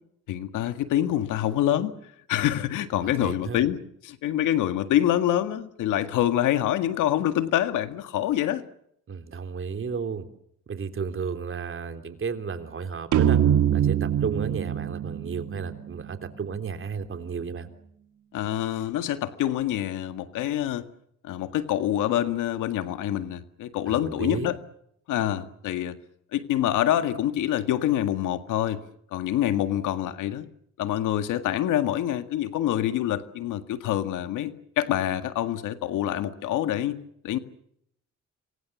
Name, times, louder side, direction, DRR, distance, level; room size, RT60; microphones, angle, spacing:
voice 1, 0.3-2.0 2.3-8.6 18.3-20.8 21.2-24.6 25.1-26.0 26.3-28.8 29.1-30.5 30.8-37.0 37.2-37.4, left 12 dB, 90° left, 1.9 m, -26 dB
voice 2, 3.0-3.6 9.1-10.3 10.7-13.4 13.7-17.7 23.9-24.5, right 6 dB, 45° right, 3.5 m, -33 dB
sound 1, 13.1-16.6, right 10 dB, 75° right, 2.7 m, -24 dB
27.5 x 23.5 x 7.3 m
cardioid pair, 90°, 30 cm